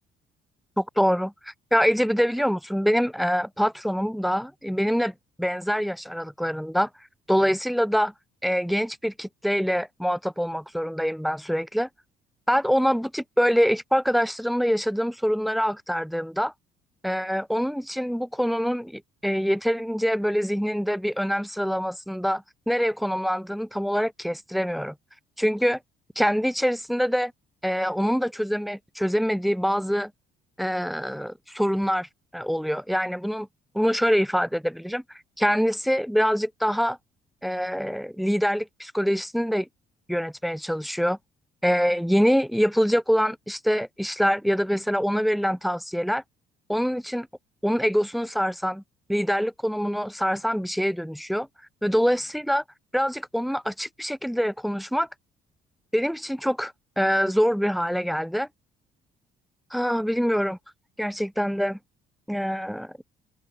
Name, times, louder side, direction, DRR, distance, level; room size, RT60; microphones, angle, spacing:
voice 1, 0.8-6.9 7.3-8.1 8.4-11.9 12.5-16.5 17.0-24.9 25.4-25.8 26.1-27.3 27.6-30.1 30.6-32.1 32.3-33.5 33.7-35.0 35.4-37.0 37.4-39.7 40.1-41.2 41.6-46.2 46.7-47.3 47.6-48.8 49.1-51.5 51.8-52.6 52.9-55.1 55.9-58.5 59.7-60.6 61.0-61.8 62.3-62.9, equal, ahead, 3.2 m, -25 dB
open air
cardioid pair, 110°, 17 cm